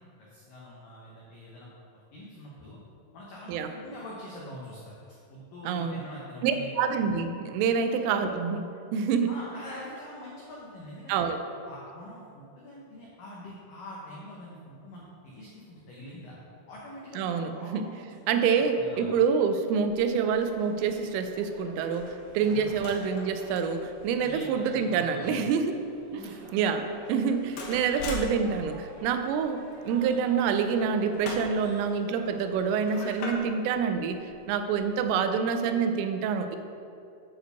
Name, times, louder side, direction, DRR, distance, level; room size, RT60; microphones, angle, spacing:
voice 1, 0.0-1.7 2.1-2.8 3.1-5.0 5.3-6.7 7.8-8.0 9.3-11.3 11.7-16.4 16.7-18.2 18.5-19.1 22.5-22.8 24.2-25.4 26.1-26.4 26.7-26.8 27.9-28.1, left 1 dB, 90° left, -5 dB, 1.8 m, -44 dB
voice 2, 5.6-6.0 6.4-9.3 11.1-11.4 17.2-17.9 18.3-25.8 26.1-26.2 26.5-26.8 27.1-34.2 34.5-36.6, right 6 dB, 90° right, 7 dB, 3.2 m, -27 dB
sound 1, 19.7-35.2, left 1 dB, 70° left, 2.8 m, -44 dB
sound 2, 20.2-33.2, right 1 dB, 60° right, 3.1 m, -50 dB
9.4 x 4.6 x 6.7 m, 2.6 s
omnidirectional pair, 5.7 m